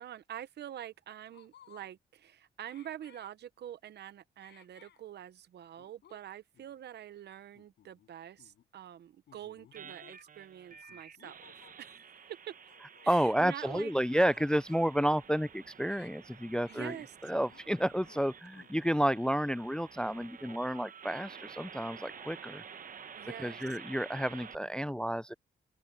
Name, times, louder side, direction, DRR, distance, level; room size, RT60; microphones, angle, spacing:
voice 1, 0.0-11.5 11.8-12.6 13.0-13.9 16.7-17.2 23.2-23.6, right 11 dB, 75° right, 0.8 m, -46 dB
sound 1, 0.8-0.9 1.3-1.9 2.6-3.3 4.4-5.0 5.8-6.2 6.5-6.7 7.5-8.1 8.4-8.6 9.3-10.2 10.7-11.8 12.6-13.8 14.1-14.9 15.7-16.1 16.5-16.9 17.5-18.3 18.5-19.1, left 10 dB, 85° left, 6.3 m, -60 dB
sound 2, 9.7-24.6, right 7 dB, 50° right, 1.0 m, -51 dB
voice 2, 13.1-17.0 17.2-22.6 23.4-25.3, equal, 5° left, 0.3 m, -31 dB
open air
cardioid pair, 70°, 17 cm